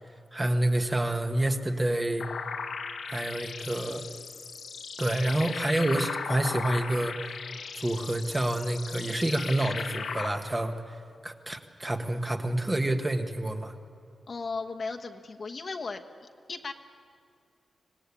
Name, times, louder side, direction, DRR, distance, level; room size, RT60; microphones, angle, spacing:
voice 1, 0.3-2.3 3.0-4.0 5.0-7.1 7.7-10.9 11.2-13.7, right 1 dB, 15° right, 5 dB, 1.3 m, -28 dB
sound 1, 2.2-10.3, left 5 dB, 90° left, 1.6 m, -37 dB
voice 2, 14.3-16.7, left 4 dB, 45° left, 4 dB, 1.2 m, -36 dB
25.5 x 18.5 x 8.5 m, 2.3 s
wide cardioid pair, 125°, 0 cm